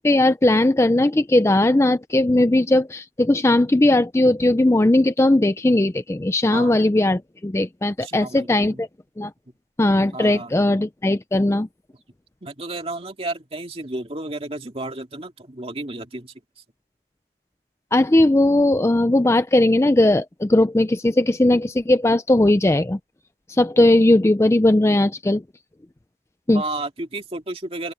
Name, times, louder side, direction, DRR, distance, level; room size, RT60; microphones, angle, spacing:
voice 1, 0.0-8.9 9.2-9.3 9.8-11.7 17.9-23.0 23.5-25.4 26.5-26.6, left 1 dB, 15° left, 0.4 m, -18 dB
voice 2, 8.0-8.8 10.1-10.5 12.4-16.3 26.5-27.9, right 2 dB, 30° right, 2.2 m, -32 dB
open air
head